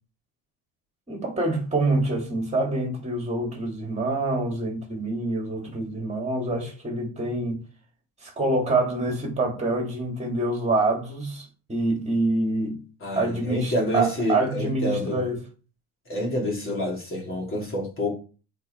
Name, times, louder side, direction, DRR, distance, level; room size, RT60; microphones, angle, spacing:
voice 1, 1.1-7.6 8.2-12.8 13.2-15.4, right 2 dB, 15° right, 2.8 m, -26 dB
voice 2, 13.0-15.2 16.1-18.1, equal, 30° left, 3.1 m, -28 dB
8.0 x 4.5 x 4.6 m
cardioid pair, 135°, 42 cm